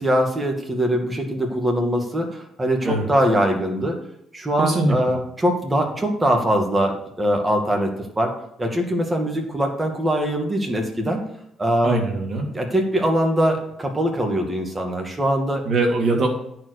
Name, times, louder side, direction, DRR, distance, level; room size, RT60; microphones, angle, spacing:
voice 1, 0.0-4.0 4.3-8.3 8.6-11.2 11.6-12.0 12.5-15.6, equal, 20° right, 2 dB, 2.3 m, -22 dB
voice 2, 4.6-5.0 11.8-12.5 15.6-16.3, right 2 dB, 50° right, 0 dB, 2.9 m, -21 dB
10.0 x 4.9 x 6.6 m, 0.76 s
cardioid pair, 90°, 0 cm